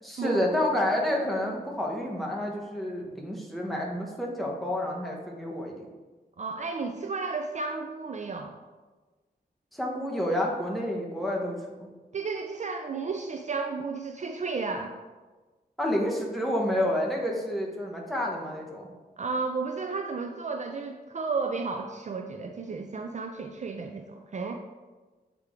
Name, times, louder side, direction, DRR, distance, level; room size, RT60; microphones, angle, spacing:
voice 1, 0.0-5.9 9.7-11.9 15.8-18.9, left 1 dB, ahead, -1 dB, 1.0 m, -29 dB
voice 2, 6.4-8.5 12.1-14.9 19.2-24.6, right 4 dB, 45° right, 4 dB, 0.4 m, -33 dB
8.1 x 3.4 x 3.6 m, 1.3 s
wide cardioid pair, 115°, 17 cm